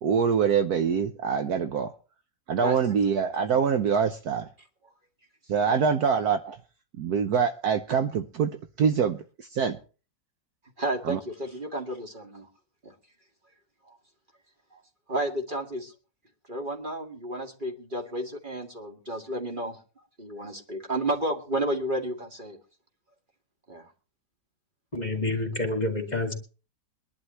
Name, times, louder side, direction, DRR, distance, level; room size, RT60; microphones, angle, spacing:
voice 1, 0.0-1.9 2.5-4.5 5.5-6.6 7.0-9.8 11.0-11.2, right 6 dB, 65° right, 9 dB, 1.3 m, -25 dB
voice 2, 2.6-3.0 5.7-5.8 10.8-12.5 12.8-12.9 13.9-14.0 14.7-14.8 15.1-15.9 16.5-19.8 20.2-22.6 23.7-23.9, right 1 dB, 30° right, 2 dB, 2.1 m, -32 dB
voice 3, 24.9-26.3, left 2 dB, 25° left, 5 dB, 2.2 m, -28 dB
22.5 x 11.5 x 3.1 m, 0.35 s
omnidirectional pair, 1.9 m